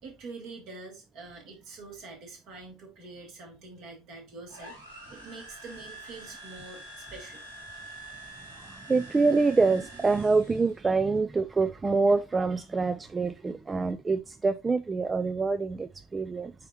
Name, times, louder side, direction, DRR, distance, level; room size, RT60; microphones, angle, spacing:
voice 1, 0.0-7.4, right 3 dB, 50° right, 3.1 m, -45 dB
sound 1, 4.5-10.8, right 1 dB, 80° right, 2.8 m, -46 dB
voice 2, 8.6-16.5, right 4 dB, 20° right, 0.4 m, -26 dB
8.5 x 4.5 x 2.6 m
figure-of-eight pair, 65°, 0 cm